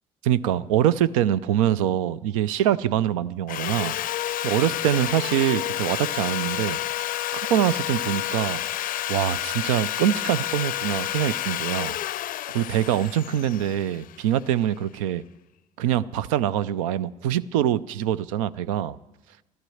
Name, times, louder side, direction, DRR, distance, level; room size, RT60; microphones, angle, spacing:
voice 1, 0.2-3.9 4.4-6.8 7.5-8.6 9.1-12.0 12.5-15.2 15.8-19.0, right 11 dB, 90° right, 0.5 m, -24 dB
Sawing, 3.5-14.5, left 13 dB, 55° left, 0.4 m, -30 dB
12.5 x 11.5 x 7.7 m
hypercardioid pair, 60°, 17 cm